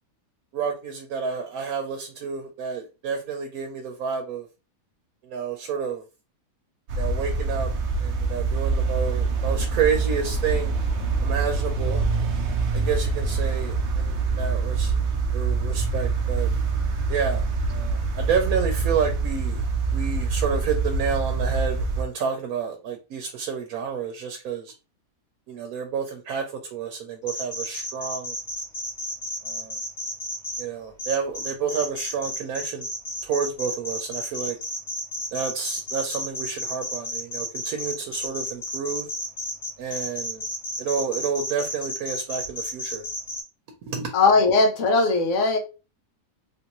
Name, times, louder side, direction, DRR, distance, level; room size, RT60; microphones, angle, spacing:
voice 1, 0.5-4.5 5.3-6.0 7.0-7.7 8.0-10.7 11.2-12.0 12.7-14.9 15.3-16.5 17.1-17.4 17.7-19.6 19.9-24.7 25.5-26.4 26.7-28.3 29.5-29.7 30.6-32.8 33.2-34.6 35.3-39.1 39.8-40.4 40.8-43.0 43.9-44.1, right 6 dB, 90° right, 1.1 m, -29 dB
sound 1, 6.9-22.0, right 4 dB, 65° right, 0.8 m, -25 dB
sound 2, 27.3-30.6 31.0-43.4, left 1 dB, 35° left, 1.9 m, -32 dB
voice 2, 44.1-45.6, left 3 dB, 65° left, 1.0 m, -19 dB
3.3 x 2.5 x 2.9 m
omnidirectional pair, 1.5 m